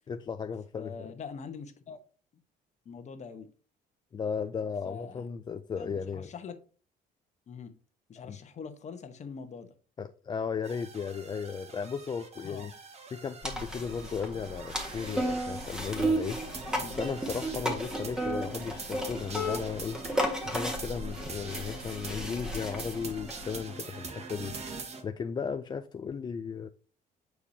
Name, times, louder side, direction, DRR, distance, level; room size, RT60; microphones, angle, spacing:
voice 1, 0.1-1.1 4.1-6.3 8.2-8.4 10.0-12.7 13.1-16.4 16.8-20.0 20.4-24.5 25.0-26.7, left 6 dB, 25° left, 0.3 m, -35 dB
voice 2, 0.8-2.0 2.8-3.5 4.8-5.3 5.7-6.6 7.5-7.8 8.1-9.7 12.4-12.7 16.7-17.0, left 5 dB, 45° left, 1.0 m, -43 dB
sound 1, 10.6-25.0, right 4 dB, 40° right, 1.3 m, -43 dB
sound 2, 13.4-23.6, right 1 dB, 5° right, 1.5 m, -34 dB
8.4 x 4.7 x 2.7 m
cardioid pair, 110°, 17 cm